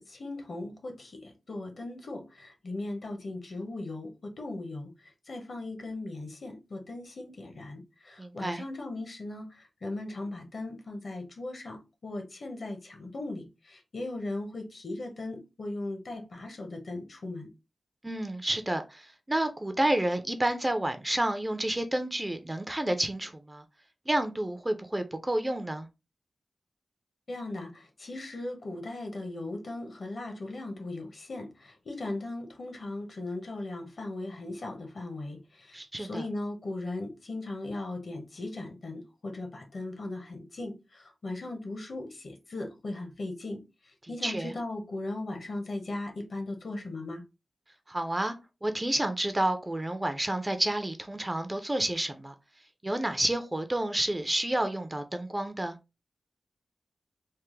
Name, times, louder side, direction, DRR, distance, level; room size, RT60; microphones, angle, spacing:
voice 1, 0.0-4.9 5.3-17.5 27.3-43.6 44.1-47.2, left 2 dB, 60° left, 1.0 m, -38 dB
voice 2, 8.2-8.6 18.0-23.6 24.1-25.9 35.7-36.3 44.2-44.5 47.9-48.3 48.6-52.3 52.8-55.8, right 1 dB, 20° right, 0.4 m, -30 dB
3.3 x 2.1 x 3.1 m
wide cardioid pair, 90°, 0 cm